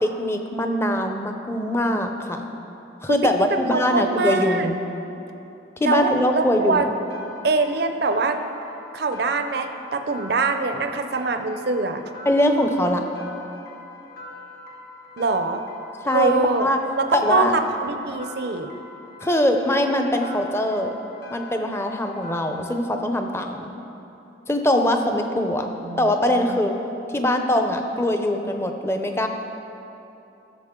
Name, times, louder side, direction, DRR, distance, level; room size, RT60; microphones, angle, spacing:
voice 1, 0.0-2.5 3.0-4.8 5.8-6.9 12.3-13.0 16.0-16.3 16.6-16.8 17.1-17.5 19.2-20.9 21.3-23.7 24.5-25.7 26.0-26.7 27.1-29.3, left 1 dB, 15° left, 5 dB, 0.5 m, -22 dB
voice 2, 3.1-4.7 5.8-6.9 7.4-8.4 8.9-12.0 15.2-15.6 16.1-16.7 17.0-18.7 25.7-26.6, right 3 dB, 55° right, 7 dB, 0.5 m, -24 dB
sound 1, 6.6-22.7, left 3 dB, 55° left, 1.5 m, -43 dB
15.0 x 6.8 x 3.7 m, 2.9 s
head